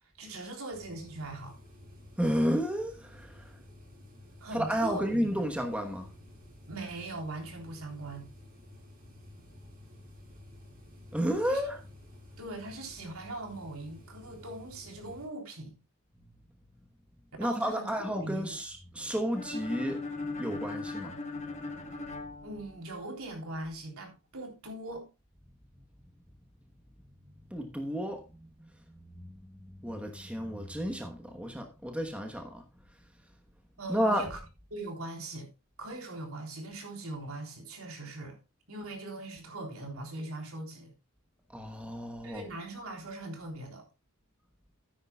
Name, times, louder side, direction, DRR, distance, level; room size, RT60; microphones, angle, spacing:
voice 1, 0.2-1.5 4.4-5.4 6.7-8.3 11.4-11.6 12.4-15.8 17.4-18.5 22.4-25.1 33.8-34.4 34.7-35.5 35.8-38.4 38.7-40.9 42.2-43.9, right 2 dB, 70° right, 3.6 m, -41 dB
sound 1, 0.7-15.3, left 1 dB, 40° right, 7.3 m, -52 dB
voice 2, 2.2-3.5 4.5-6.1 11.1-11.8 17.4-20.0 20.4-21.2 27.1-28.2 28.6-28.7 29.3-32.6 33.9-34.3 41.5-42.4, equal, 5° right, 1.1 m, -32 dB
sound 2, 19.3-23.2, left 3 dB, 30° left, 1.5 m, -39 dB
13.5 x 9.8 x 2.3 m
head